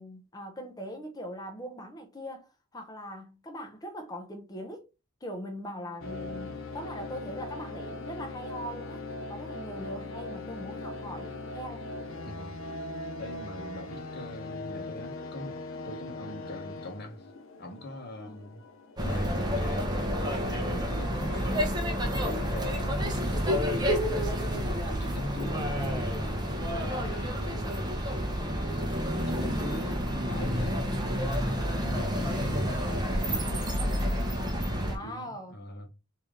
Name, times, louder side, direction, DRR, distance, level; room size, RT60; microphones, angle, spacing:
voice 1, 0.0-4.9 5.2-11.9 18.2-18.4 24.9-25.3 29.2-29.9 34.8-35.5, equal, 20° left, 0.6 m, -41 dB
sound 1, 6.0-24.2, left 2 dB, 70° left, 0.5 m, -41 dB
voice 2, 12.2-12.6 13.2-15.6 15.8-17.3 17.6-18.6 19.0-19.9 20.2-21.6 22.0-24.1 24.5-27.8 29.1-31.1 31.8-33.9 35.0-35.9, left 1 dB, 50° left, 0.9 m, -42 dB
sound 2, 19.0-35.0, equal, 20° right, 0.7 m, -29 dB
3.2 x 2.7 x 3.7 m
head